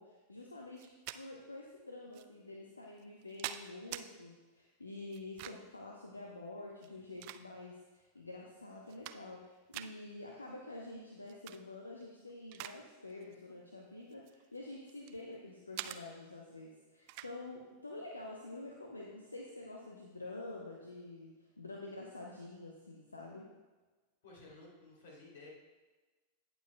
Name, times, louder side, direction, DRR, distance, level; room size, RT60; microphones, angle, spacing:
voice 1, 0.0-23.5, left 2 dB, 80° left, -1 dB, 0.9 m, -48 dB
sound 1, 0.8-1.2 2.1-2.3 3.0-4.1 5.1-5.8 6.7-7.8 8.4-8.5 8.8-9.4 9.7-9.9 11.3-11.6 12.0-12.8 13.1-13.3 14.1-15.2 15.8-16.0 17.1-17.3, right 14 dB, 45° right, 0.4 m, -45 dB
voice 2, 24.2-25.5, left 2 dB, 60° left, -3 dB, 2.9 m, -54 dB
17.5 x 7.1 x 2.2 m, 1.3 s
figure-of-eight pair, 90°, 0 cm